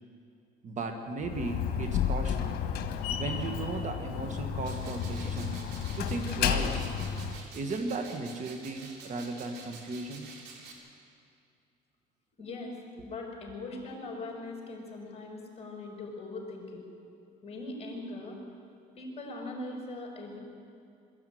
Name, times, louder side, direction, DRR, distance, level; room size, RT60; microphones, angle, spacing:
voice 1, 0.6-2.5 3.1-6.9 7.5-10.3 12.7-12.8, right 3 dB, 45° right, 5 dB, 1.8 m, -36 dB
Slam, 1.2-7.4, left 8 dB, 70° left, 1.6 m, -32 dB
sound 1, 4.6-10.7, right 4 dB, 80° right, 3.6 m, -49 dB
voice 2, 12.4-16.8 17.4-18.4 19.0-20.4, left 2 dB, 35° left, 0 dB, 5.8 m, -40 dB
21.5 x 14.0 x 9.4 m, 2.5 s
cardioid pair, 110°, 17 cm